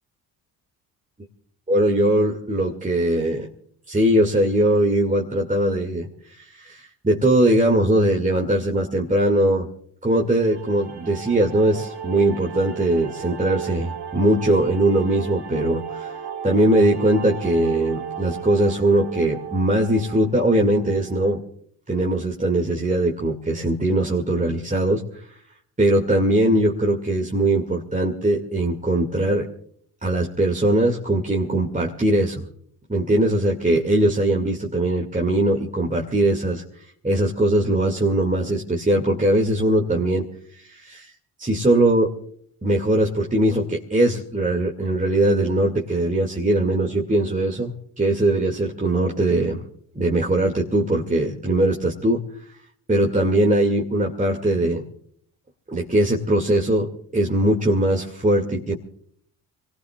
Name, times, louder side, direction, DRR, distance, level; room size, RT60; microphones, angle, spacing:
voice 1, 1.7-3.5 3.9-9.7 10.0-16.2 16.4-21.4 21.9-25.0 25.8-29.5 30.0-32.4 32.9-36.6 37.0-40.3 40.6-41.1 41.4-42.1 42.6-49.6 49.9-52.2 52.9-54.8 55.7-58.7, right 1 dB, 15° right, -1 dB, 2.4 m, -21 dB
sound 1, 10.3-21.4, right 8 dB, 55° right, 2.1 m, -35 dB
27.5 x 19.0 x 2.4 m, 0.64 s
hypercardioid pair, 40°, 47 cm